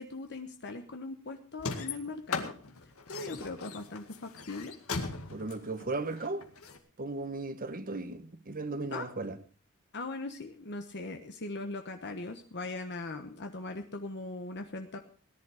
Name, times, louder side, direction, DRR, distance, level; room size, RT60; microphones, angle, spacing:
voice 1, 0.0-2.5 3.1-4.7 8.9-9.1 9.9-15.0, left 2 dB, 50° left, 1.2 m, -40 dB
sound 1, 1.6-6.8, left 4 dB, 70° left, 2.0 m, -38 dB
voice 2, 5.3-6.5 7.0-9.4, right 2 dB, 40° right, 1.2 m, -36 dB
18.0 x 11.0 x 4.9 m
head